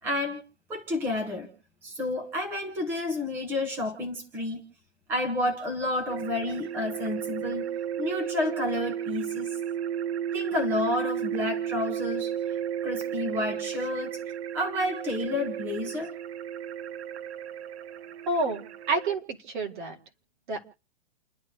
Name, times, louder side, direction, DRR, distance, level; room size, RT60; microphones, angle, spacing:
voice 1, 0.0-0.4 0.7-1.5 1.8-4.6 5.1-7.6 8.0-9.6 10.3-16.1, left 2 dB, 5° right, 4 dB, 0.9 m, -30 dB
sound 1, 6.1-19.2, right 9 dB, 80° right, 0.8 m, -33 dB
voice 2, 18.3-19.9 20.5-20.6, right 3 dB, 50° right, 4 dB, 2.1 m, -29 dB
29.5 x 11.0 x 3.3 m, 0.39 s
hypercardioid pair, 175°, 32 cm